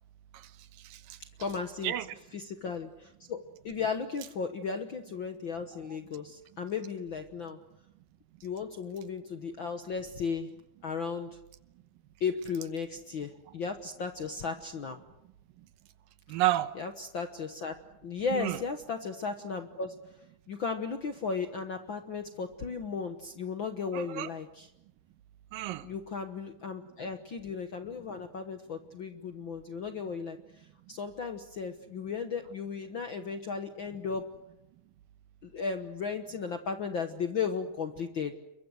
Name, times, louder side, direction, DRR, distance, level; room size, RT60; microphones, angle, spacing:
voice 1, 0.8-1.2 1.8-2.1 15.6-15.7 16.3-16.7 18.3-18.6 23.9-24.3 25.5-25.9, right 15 dB, 85° right, 12 dB, 2.8 m, -31 dB
voice 2, 1.4-1.9 2.3-7.6 8.4-10.5 10.8-11.4 12.2-15.0 16.8-17.7 18.0-19.9 20.5-24.7 25.8-34.3 35.4-38.3, left 5 dB, 60° left, 7 dB, 1.3 m, -35 dB
29.0 x 23.0 x 6.4 m, 0.88 s
omnidirectional pair, 3.9 m